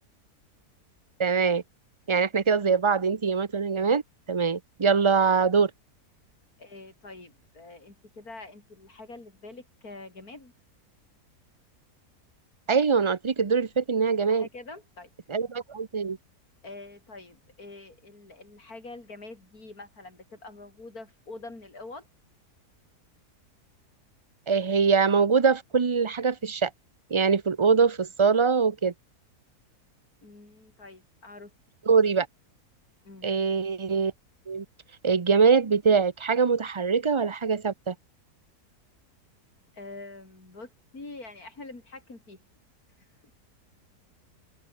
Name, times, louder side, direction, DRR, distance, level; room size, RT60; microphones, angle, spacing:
voice 1, 1.2-1.6 2.1-4.0 4.3-5.7 12.7-14.5 15.3-16.2 24.5-26.7 27.1-28.9 31.9-32.3 33.2-34.1 34.5-34.6 35.0-37.9, right 5 dB, 40° right, 0.4 m, -23 dB
voice 2, 6.6-10.5 14.3-15.1 16.6-22.1 30.2-31.5 33.0-33.3 39.7-42.4 43.0-43.1, left 2 dB, 60° left, 5.9 m, -45 dB
omnidirectional pair, 1.7 m